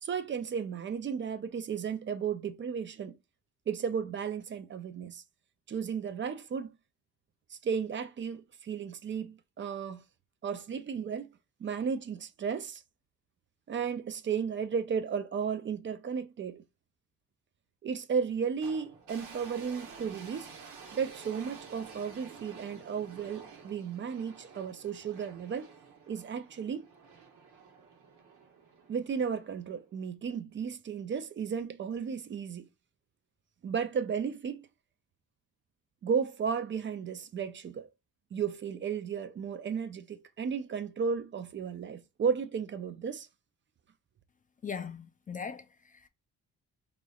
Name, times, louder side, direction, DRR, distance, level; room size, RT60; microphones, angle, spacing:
voice 1, 0.0-3.2 3.7-5.2 5.7-6.7 7.5-10.0 10.4-11.3 11.6-12.8 13.7-16.6 17.8-20.5 20.9-25.7 26.1-26.9 28.9-32.7 33.6-34.7 36.0-37.9 38.3-43.3, right 6 dB, 40° right, 0.5 m, -34 dB
sound 1, 18.6-29.8, right 5 dB, 90° right, 1.1 m, -51 dB
voice 2, 44.6-46.1, left 6 dB, 30° left, 0.4 m, -40 dB
3.9 x 3.0 x 2.3 m
cardioid pair, 90°, 30 cm